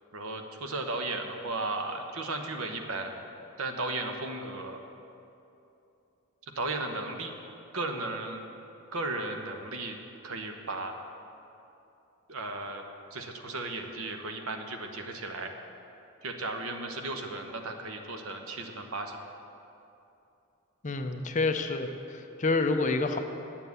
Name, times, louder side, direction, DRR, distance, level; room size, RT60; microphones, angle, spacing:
voice 1, 0.1-3.2 3.6-4.8 6.4-7.3 7.7-8.4 8.9-10.0 10.2-11.1 12.3-12.8 13.1-15.5 16.2-19.2, right 2 dB, 75° right, 5 dB, 1.0 m, -35 dB
voice 2, 20.8-23.2, left 3 dB, 35° left, 7 dB, 0.6 m, -28 dB
8.9 x 7.2 x 8.2 m, 2.8 s
head